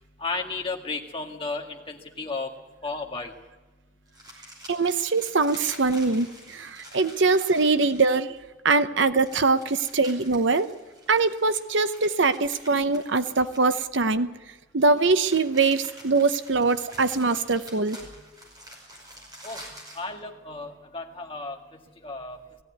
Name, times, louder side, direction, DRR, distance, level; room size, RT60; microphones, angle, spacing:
voice 1, 0.2-2.5 2.8-3.3 18.0-18.1 19.4-19.6 20.0-21.6 22.0-22.4, left 3 dB, 25° left, 2 dB, 1.9 m, -33 dB
sound 1, 4.1-8.4 9.2-14.1 14.9-20.1, equal, 20° right, 5.5 m, -47 dB
voice 2, 4.7-8.4 8.6-10.7 11.1-14.3 14.7-18.0, right 3 dB, 65° right, 11 dB, 0.8 m, -23 dB
18.5 x 15.5 x 9.5 m, 1.1 s
head